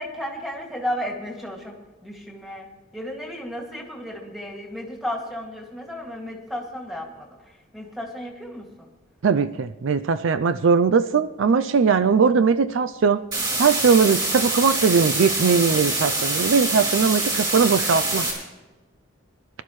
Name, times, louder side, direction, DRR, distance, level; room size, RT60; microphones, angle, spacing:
voice 1, 0.0-2.7 2.9-8.9, equal, ahead, -1 dB, 2.2 m, -33 dB
voice 2, 9.2-13.2 13.6-18.3, right 5 dB, 70° right, 12 dB, 0.4 m, -20 dB
sound 1, 13.3-18.3, right 2 dB, 20° right, 4.5 m, -25 dB
22.5 x 12.0 x 3.2 m, 1.2 s
head